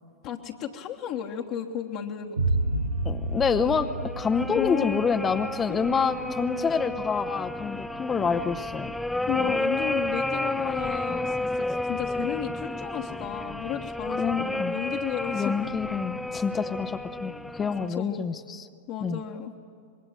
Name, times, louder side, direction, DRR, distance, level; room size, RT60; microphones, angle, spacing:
voice 1, 0.2-2.5 4.6-5.0 5.7-5.9 9.3-15.7 17.9-18.3 18.9-19.5, left 9 dB, 40° left, 0 dB, 1.4 m, -33 dB
sound 1, 2.4-9.7, right 2 dB, 80° right, 0.9 m, -32 dB
voice 2, 3.0-3.9 4.2-8.9 14.2-14.7 15.3-18.7 19.0-19.2, left 5 dB, 20° left, 9 dB, 0.8 m, -27 dB
sound 2, 3.5-17.9, left 1 dB, 5° left, 0.5 m, -32 dB
25.5 x 22.0 x 7.5 m, 2.4 s
figure-of-eight pair, 90°, 0 cm